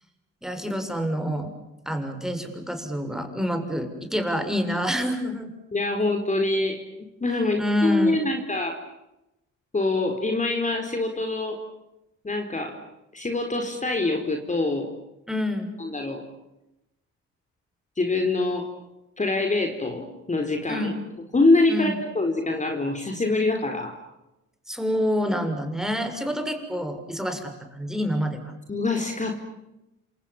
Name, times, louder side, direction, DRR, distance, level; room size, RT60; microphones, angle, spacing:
voice 1, 0.4-1.5 1.9-5.5 7.6-8.2 15.3-15.7 20.7-21.0 21.7-21.9 24.7-28.5, equal, ahead, 6 dB, 7.0 m, -27 dB
voice 2, 5.7-8.7 9.7-11.6 12.2-12.8 13.1-14.9 15.8-16.3 18.0-18.7 19.2-21.0 21.3-24.0 28.7-29.4, left 2 dB, 25° left, 4 dB, 4.4 m, -25 dB
29.0 x 27.0 x 7.3 m, 0.92 s
cardioid pair, 90°, 30 cm